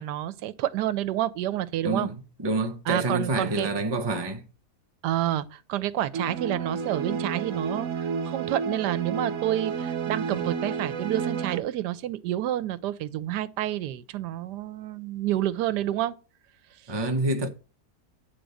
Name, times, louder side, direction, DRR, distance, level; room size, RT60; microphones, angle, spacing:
voice 1, 0.0-2.1 2.9-3.7 5.0-16.1, right 13 dB, 90° right, 1.2 m, -29 dB
voice 2, 1.8-4.4 16.9-17.5, right 2 dB, 25° right, 0.6 m, -27 dB
sound 1, 6.1-11.6, right 6 dB, 60° right, 1.0 m, -31 dB
8.1 x 3.8 x 6.3 m
omnidirectional pair, 1.8 m